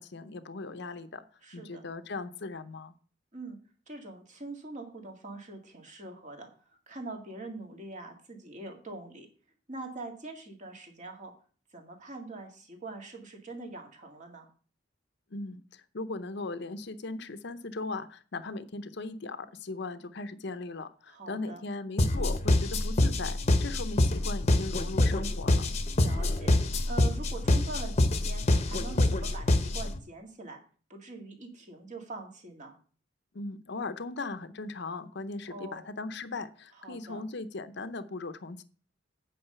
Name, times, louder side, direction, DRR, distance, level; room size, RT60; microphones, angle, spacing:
voice 1, 0.0-1.2 1.5-2.9 15.3-25.7 33.3-38.6, left 3 dB, 65° left, 11 dB, 0.7 m, -38 dB
voice 2, 1.4-1.8 3.3-3.6 3.9-9.3 9.7-11.3 11.7-14.5 21.1-21.6 26.0-26.5 26.9-30.6 30.9-32.8 35.5-35.9 36.8-37.3, right 2 dB, 40° right, 3 dB, 2.0 m, -43 dB
sound 1, 22.0-30.0, left 1 dB, 35° left, 0.9 m, -26 dB
8.8 x 5.1 x 6.8 m, 0.41 s
head